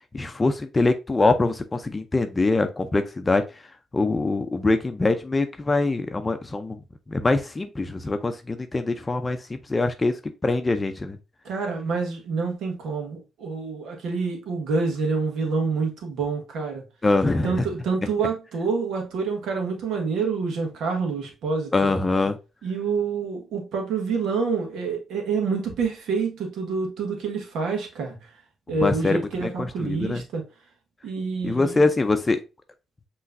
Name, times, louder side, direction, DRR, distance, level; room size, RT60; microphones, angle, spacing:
voice 1, 0.1-3.4 3.9-6.8 7.1-11.2 17.0-17.7 21.7-22.4 28.8-30.2 31.4-32.4, left 3 dB, 25° left, 0.5 m, -23 dB
voice 2, 11.4-16.8 17.4-21.7 22.6-28.3 28.7-30.4 31.0-31.8, right 4 dB, 75° right, 1.4 m, -27 dB
5.5 x 3.1 x 2.5 m
cardioid pair, 75°, 0 cm